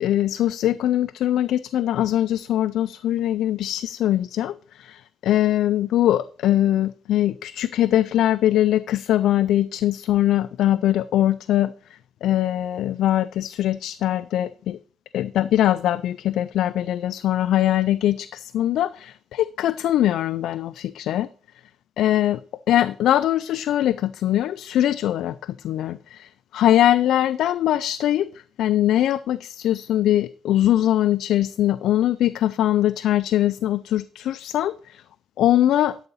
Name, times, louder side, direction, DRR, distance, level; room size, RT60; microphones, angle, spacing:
voice 1, 0.0-14.8 15.1-21.3 22.0-22.4 22.7-28.3 28.6-35.0 35.4-36.0, left 12 dB, 80° left, 0.3 m, -22 dB
11.5 x 6.9 x 4.1 m
cardioid pair, 90°, 0 cm